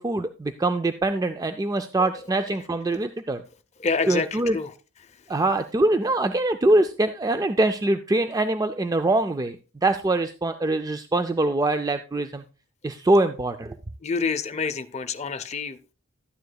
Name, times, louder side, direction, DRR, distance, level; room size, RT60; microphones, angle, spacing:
voice 1, 0.0-3.4 4.1-4.6 5.3-9.6 9.8-12.4 12.8-13.8, right 2 dB, 15° right, 8 dB, 0.3 m, -23 dB
voice 2, 3.8-4.7 14.0-15.9, left 4 dB, 30° left, 9 dB, 0.6 m, -28 dB
12.5 x 9.4 x 2.3 m, 0.34 s
head